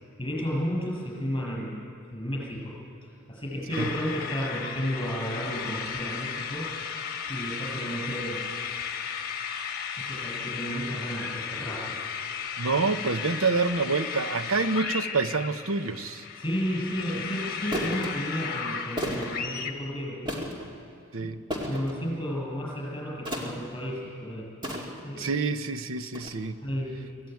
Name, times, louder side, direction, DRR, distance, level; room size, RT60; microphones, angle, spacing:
voice 1, 0.2-1.8 2.1-6.7 7.3-8.5 10.0-12.0 16.3-20.2 21.2-21.3 21.7-24.5 25.0-25.4 26.6-27.1, equal, 20° left, -3 dB, 7.0 m, -32 dB
sound 1, 3.7-19.7, left 6 dB, 45° left, 1.3 m, -35 dB
voice 2, 12.6-16.3 21.1-21.4 25.2-26.6, right 4 dB, 70° right, 11 dB, 0.8 m, -27 dB
sound 2, 16.6-16.8 17.7-18.1 19.0-19.4 20.3-20.7 21.5-21.9 23.3-23.7 24.6-25.1 26.1-26.3, equal, 20° right, 2.3 m, -33 dB
23.5 x 14.5 x 9.3 m, 2.5 s
head